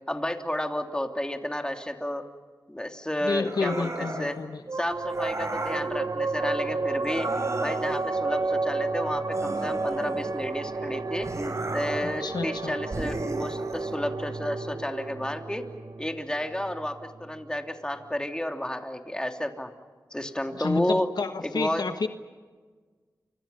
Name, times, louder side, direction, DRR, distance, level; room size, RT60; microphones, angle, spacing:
voice 1, 0.0-2.2 2.7-4.4 4.7-7.3 7.6-11.3 11.7-15.7 16.0-19.7 20.1-21.1 21.4-21.8, left 1 dB, 10° left, 4 dB, 3.1 m, -31 dB
voice 2, 3.2-4.6 12.0-12.8 20.5-22.1, left 4 dB, 70° left, 8 dB, 1.3 m, -30 dB
sound 1, 3.4-4.4 5.1-5.9 7.0-8.1 9.3-10.5 11.2-12.2 12.9-13.9, right 2 dB, 45° right, 6.9 m, -35 dB
sound 2, 4.7-17.5, right 3 dB, 60° right, 1.4 m, -32 dB
30.0 x 26.0 x 5.7 m, 1.4 s
cardioid pair, 45°, 7 cm